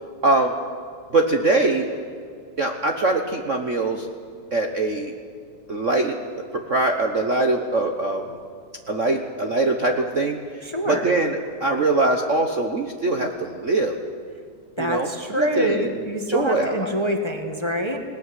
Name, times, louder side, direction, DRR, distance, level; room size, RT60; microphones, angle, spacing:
voice 1, 0.2-0.5 1.1-1.9 2.6-4.1 4.5-5.1 5.7-6.2 6.5-8.2 8.9-10.4 10.9-14.0 14.8-15.1 15.4-15.9 16.3-16.9, right 2 dB, 90° right, 4 dB, 0.6 m, -22 dB
voice 2, 10.6-11.2 14.8-18.0, equal, 15° left, 5 dB, 1.0 m, -26 dB
20.0 x 19.0 x 9.7 m, 2.2 s
omnidirectional pair, 3.4 m